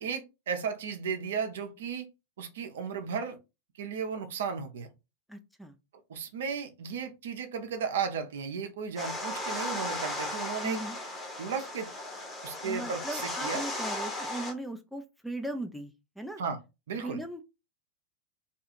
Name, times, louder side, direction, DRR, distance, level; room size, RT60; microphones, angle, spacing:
voice 1, 0.0-2.1 2.4-3.4 3.8-4.9 6.1-10.8 11.4-11.9 12.4-13.6 16.4-16.6 16.9-17.2, right 6 dB, 60° right, 0.5 m, -34 dB
voice 2, 5.3-5.7 10.6-11.0 12.6-16.4 17.0-17.4, right 1 dB, ahead, 0.4 m, -38 dB
sound 1, 9.0-14.5, left 1 dB, 15° left, 0.9 m, -36 dB
2.7 x 2.3 x 2.8 m
figure-of-eight pair, 90°, 0 cm